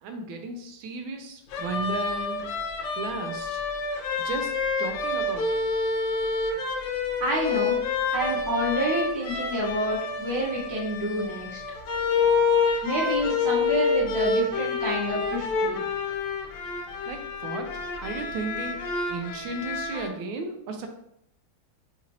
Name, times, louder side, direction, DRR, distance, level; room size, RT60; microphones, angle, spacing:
voice 1, 0.0-2.4 3.0-3.6 4.2-4.5 4.8-5.6 17.1-17.7 18.0-18.8 19.1-20.9, right 3 dB, 85° right, 5 dB, 1.4 m, -34 dB
sound 1, 1.5-20.1, left 4 dB, 70° left, 1.1 m, -28 dB
voice 2, 7.2-7.8 8.1-11.6 12.8-15.8, equal, 15° right, -6 dB, 0.7 m, -28 dB
5.8 x 2.6 x 2.8 m, 0.75 s
omnidirectional pair, 2.1 m